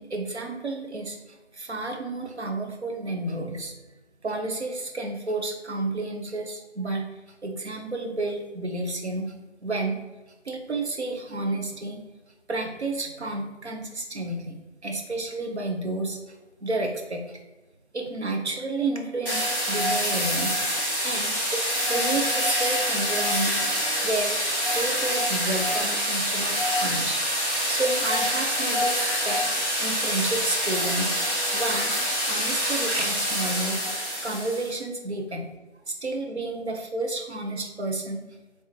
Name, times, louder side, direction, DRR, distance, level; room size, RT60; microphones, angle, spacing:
voice 1, 0.0-3.7 4.2-7.0 7.4-9.3 9.6-10.0 10.4-12.0 12.5-16.2 16.6-17.4 17.9-20.7 21.0-21.6 21.9-23.7 24.0-24.4 24.7-29.4 29.8-33.8 34.2-35.5 35.9-38.3, right 2 dB, 70° right, 3 dB, 0.8 m, -31 dB
sound 1, 19.3-34.7, equal, 50° right, 1.3 m, -26 dB
3.5 x 2.8 x 4.3 m, 1.1 s
figure-of-eight pair, 175°, 35 cm